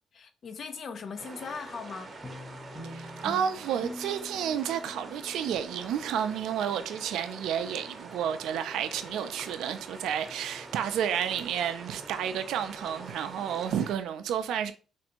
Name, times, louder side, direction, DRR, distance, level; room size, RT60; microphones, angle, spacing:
voice 1, 0.1-2.1, left 5 dB, 55° left, 0.5 m, -39 dB
sound 1, 1.2-14.0, right 3 dB, 40° right, 0.7 m, -45 dB
sound 2, 2.2-6.9, left 1 dB, 15° left, 1.0 m, -45 dB
voice 2, 2.8-14.7, right 9 dB, 80° right, 0.3 m, -31 dB
3.3 x 2.5 x 2.9 m
cardioid pair, 90°, 0 cm